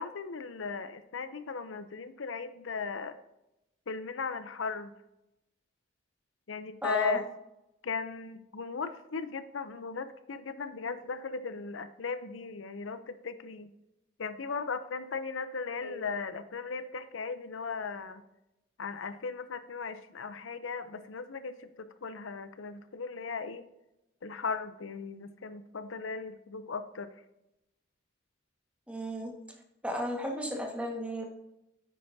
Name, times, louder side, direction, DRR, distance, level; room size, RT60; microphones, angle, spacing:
voice 1, 0.0-3.1 3.9-4.9 6.5-7.2 7.8-13.7 14.2-18.2 18.8-23.6 24.2-27.1, left 4 dB, 90° left, 11 dB, 0.6 m, -37 dB
voice 2, 6.8-7.2 15.8-16.0 28.9-29.3 29.8-31.2, left 1 dB, 5° right, 1 dB, 1.6 m, -33 dB
10.0 x 8.7 x 2.7 m, 0.90 s
head